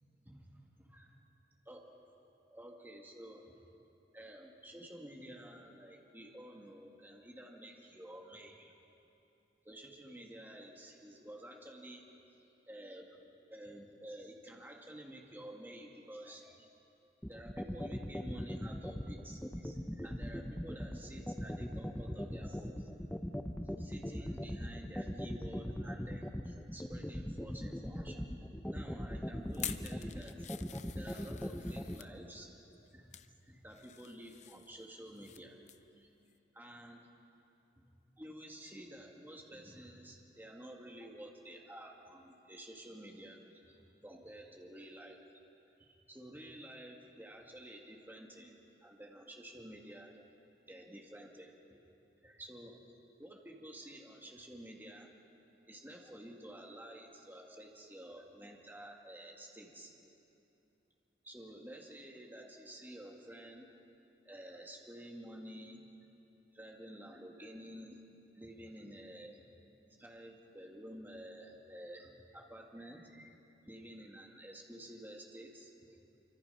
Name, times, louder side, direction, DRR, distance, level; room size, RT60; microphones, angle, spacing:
voice 1, 1.7-2.0 2.5-3.5 4.1-8.8 9.6-12.1 12.7-13.2 13.5-16.6 17.3-22.9 23.8-28.3 28.6-30.5 30.9-32.5 32.9-33.1 33.5-35.6 36.0-36.1 36.5-37.0 37.8-37.9 38.2-43.8 44.0-45.2 45.8-50.2 50.6-51.8 52.2-52.8 53.2-55.1 55.7-59.9 61.2-63.7 64.2-65.8 66.5-68.0 68.3-69.5 70.0-73.3 73.6-75.7, right 1 dB, 10° right, 0 dB, 2.2 m, -51 dB
sound 1, 17.2-32.0, equal, 10° left, 0.8 m, -39 dB
sound 2, 29.5-32.1 32.7-33.3 33.7-35.4 35.7-35.9 36.3-36.4, left 10 dB, 40° left, 0.7 m, -47 dB
26.0 x 24.5 x 5.7 m, 2.7 s
head